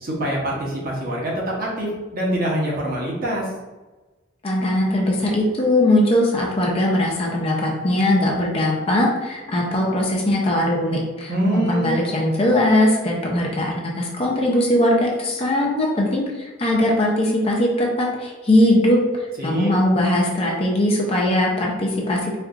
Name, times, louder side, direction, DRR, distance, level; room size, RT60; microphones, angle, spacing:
voice 1, 0.0-1.3 1.6-3.4 11.3-11.9 19.4-19.7, right 1 dB, 45° right, -4 dB, 0.9 m, -25 dB
voice 2, 4.4-22.4, left 1 dB, 30° left, -2 dB, 0.5 m, -20 dB
4.3 x 2.4 x 2.4 m, 1.2 s
head